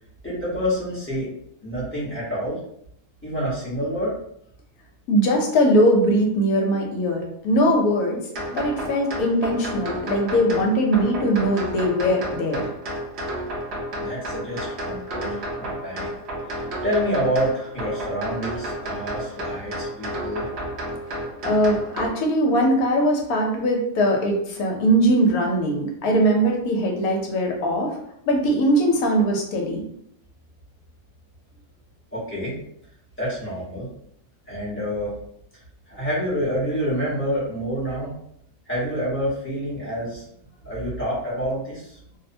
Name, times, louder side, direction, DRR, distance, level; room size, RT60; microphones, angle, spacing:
voice 1, 0.2-1.3 1.6-2.6 3.2-4.2 14.0-16.1 16.5-20.5 32.1-32.6 33.2-33.9 34.5-35.1 35.9-38.1 38.7-40.2 40.6-42.0, equal, 10° left, -8 dB, 0.7 m, -27 dB
voice 2, 5.1-8.2 8.5-12.7 21.4-27.9 28.3-29.8, equal, 70° left, 1 dB, 1.0 m, -21 dB
sound 1, 8.3-22.1, right 1 dB, 55° right, 0.8 m, -31 dB
2.7 x 2.0 x 2.6 m, 0.74 s
omnidirectional pair, 1.7 m